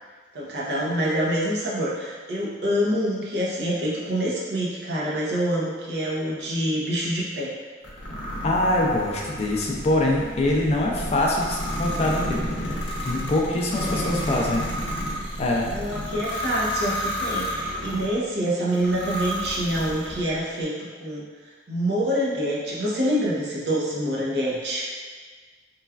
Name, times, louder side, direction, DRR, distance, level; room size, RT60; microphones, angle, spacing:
voice 1, 0.3-7.5 13.6-14.1 15.7-20.7 21.0-21.2 21.7-24.8, equal, 70° right, -6 dB, 0.7 m, -26 dB
sound 1, 7.8-18.1 18.7-20.4, equal, 85° left, 0.6 m, -31 dB
voice 2, 8.4-14.6 15.4-15.7, left 1 dB, 35° left, -2 dB, 0.4 m, -24 dB
3.1 x 2.3 x 2.2 m, 1.5 s
head